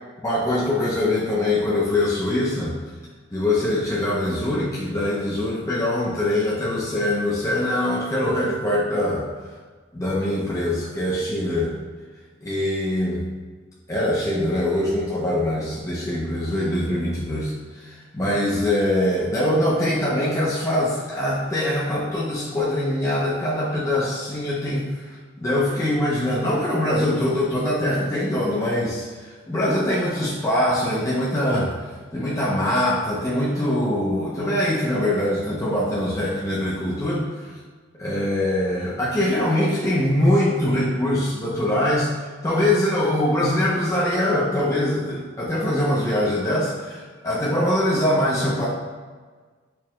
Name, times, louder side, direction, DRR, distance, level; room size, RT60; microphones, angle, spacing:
voice 1, 0.2-2.8 3.3-9.3 9.9-11.7 12.4-13.2 13.9-29.1 29.5-37.6 38.0-48.6, left 1 dB, 15° left, -7 dB, 0.5 m, -23 dB
4.6 x 2.1 x 3.0 m, 1.5 s
head